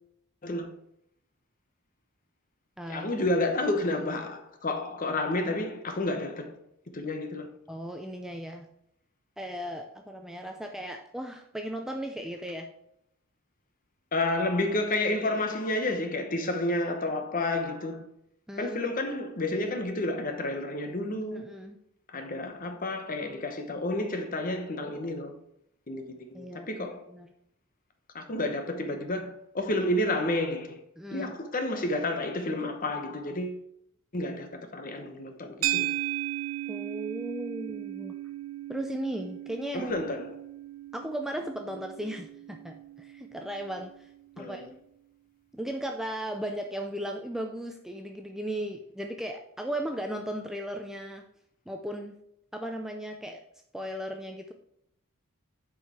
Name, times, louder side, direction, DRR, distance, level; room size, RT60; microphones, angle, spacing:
voice 1, 0.4-0.7 2.9-6.6 6.9-7.5 14.1-18.0 18.6-21.4 22.1-25.3 25.9-27.0 28.1-30.8 31.1-33.6 34.1-35.9 39.7-40.3 44.4-44.7, left 2 dB, 40° left, 1.0 m, -30 dB
voice 2, 2.8-3.2 7.7-8.7 9.4-12.7 18.5-18.8 21.3-21.8 26.3-27.3 31.0-31.3 36.7-38.1 38.7-39.9 40.9-44.1 44.4-44.6 45.5-51.2 51.7-52.1 52.5-53.4 53.7-54.5, right 1 dB, ahead, 0.4 m, -36 dB
sound 1, 35.6-44.1, right 15 dB, 85° right, 0.6 m, -36 dB
8.1 x 4.8 x 4.3 m
head